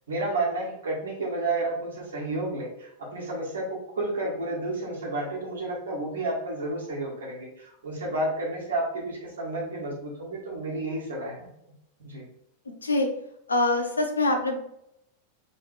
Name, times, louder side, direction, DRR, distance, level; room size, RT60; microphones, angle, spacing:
voice 1, 0.1-11.5 12.0-12.2, right 2 dB, 65° right, -3 dB, 1.6 m, -31 dB
voice 2, 13.5-14.6, left 2 dB, 75° left, 4 dB, 0.7 m, -24 dB
3.5 x 3.3 x 4.2 m, 0.79 s
figure-of-eight pair, 90°, 0 cm